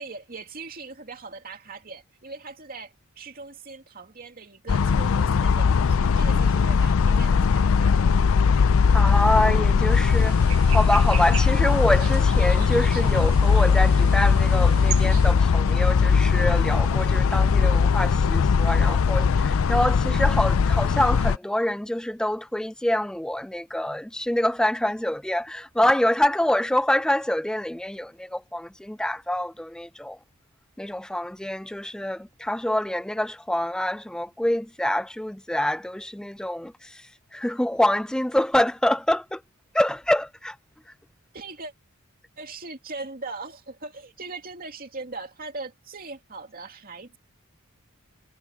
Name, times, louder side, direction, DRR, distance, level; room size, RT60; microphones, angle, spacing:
voice 1, 0.0-8.2 41.3-41.7 42.4-47.2, right 3 dB, 45° right, 2.7 m, -40 dB
sound 1, 4.7-21.4, left 5 dB, 65° left, 0.4 m, -20 dB
voice 2, 8.9-30.2 30.8-39.4 39.7-40.6, left 1 dB, 5° left, 0.3 m, -26 dB
sound 2, 9.9-15.3, right 12 dB, 75° right, 1.2 m, -39 dB
head